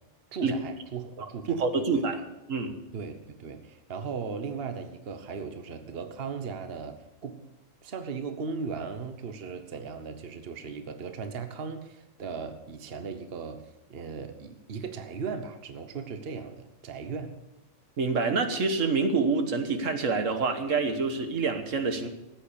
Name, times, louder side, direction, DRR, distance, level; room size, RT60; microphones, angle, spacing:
voice 1, 0.3-2.1 2.9-7.5 7.8-17.4, right 5 dB, 50° right, 8 dB, 1.2 m, -37 dB
voice 2, 1.6-2.2 2.5-2.7 18.0-22.1, right 4 dB, 75° right, 6 dB, 1.7 m, -26 dB
15.0 x 8.8 x 6.8 m, 0.97 s
omnidirectional pair, 1.3 m